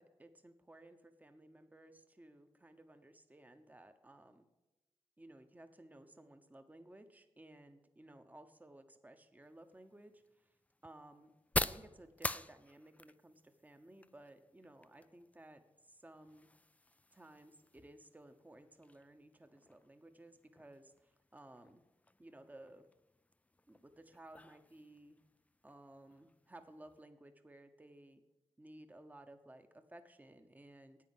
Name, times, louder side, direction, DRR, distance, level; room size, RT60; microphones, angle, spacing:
voice 1, 0.0-4.5 5.2-10.6 10.8-11.3 11.6-16.5 17.1-21.8 22.2-22.9 23.7-25.2 25.6-28.2 28.6-31.0, right 1 dB, 15° right, 8 dB, 0.9 m, -58 dB
sound 1, 9.4-27.0, left 2 dB, 15° left, 0.3 m, -47 dB
9.5 x 9.2 x 7.7 m, 1.0 s
wide cardioid pair, 125°, 11 cm